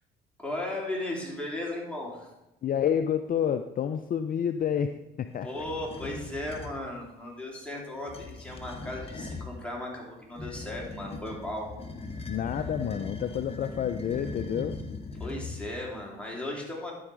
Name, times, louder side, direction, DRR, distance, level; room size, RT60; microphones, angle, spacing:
voice 1, 0.4-2.3 5.4-11.7 15.2-16.9, left 1 dB, 5° left, -3 dB, 3.2 m, -36 dB
voice 2, 2.6-5.5 12.3-14.8, left 8 dB, 45° left, 9 dB, 0.5 m, -29 dB
sound 1, 5.5-6.8 7.9-9.6 10.3-15.9, left 3 dB, 30° left, 1.1 m, -40 dB
12.0 x 4.7 x 4.9 m, 0.93 s
supercardioid pair, 70°, 21 cm